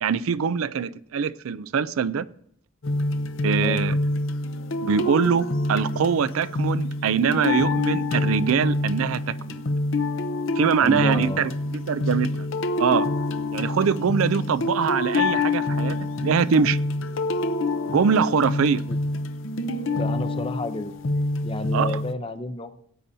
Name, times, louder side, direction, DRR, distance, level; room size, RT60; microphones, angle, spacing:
voice 1, 0.0-2.2 3.4-4.0 4.8-9.6 10.6-12.3 12.8-13.1 13.5-16.8 17.9-18.8 21.7-22.0, right 6 dB, 80° right, 0.4 m, -23 dB
sound 1, 2.8-22.1, left 2 dB, 65° left, 0.7 m, -26 dB
voice 2, 10.8-11.5 18.9-19.0 19.9-20.9 21.4-22.7, left 2 dB, 25° left, 0.6 m, -31 dB
17.5 x 8.6 x 2.7 m
head